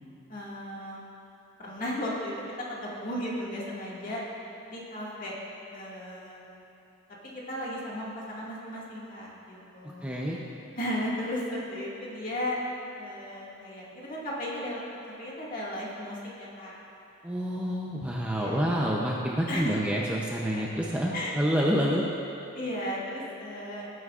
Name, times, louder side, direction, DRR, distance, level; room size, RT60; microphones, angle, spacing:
voice 1, 0.3-1.0 1.6-4.2 4.7-5.4 5.7-6.5 7.2-10.4 10.8-12.6 12.9-14.8 15.2-16.8 18.3-19.0 19.5-19.9 20.5-20.6 21.1-21.4 22.5-24.0, left 1 dB, 40° left, -6 dB, 2.1 m, -35 dB
voice 2, 9.8-10.4 17.2-22.0, equal, 5° right, -3 dB, 0.6 m, -28 dB
18.0 x 9.5 x 2.5 m, 3.0 s
head